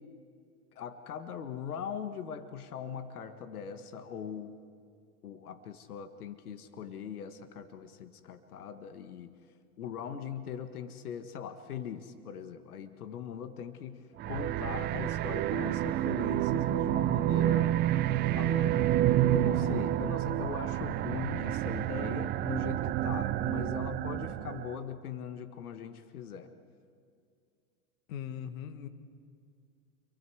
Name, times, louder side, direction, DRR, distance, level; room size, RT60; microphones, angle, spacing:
voice 1, 0.7-4.6 5.2-9.3 9.8-17.8 18.3-18.9 19.3-26.5, left 7 dB, 85° left, 9 dB, 1.5 m, -40 dB
sound 1, 14.2-24.8, right 13 dB, 25° right, 0.5 m, -29 dB
voice 2, 28.1-28.9, left 9 dB, 65° left, 9 dB, 1.9 m, -39 dB
29.0 x 23.5 x 4.8 m, 2.3 s
hypercardioid pair, 125°, 44 cm